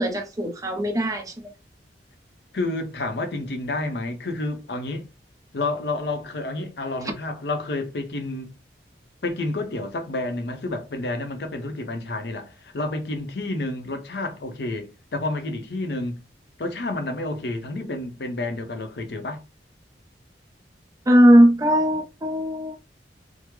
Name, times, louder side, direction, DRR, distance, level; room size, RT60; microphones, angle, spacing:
voice 1, 0.0-1.5 21.1-22.8, equal, 20° right, 0.6 m, -18 dB
voice 2, 2.5-5.1 5.5-8.5 9.2-16.2 16.6-19.4, left 2 dB, 65° left, 0.7 m, -29 dB
3.5 x 2.1 x 3.0 m
head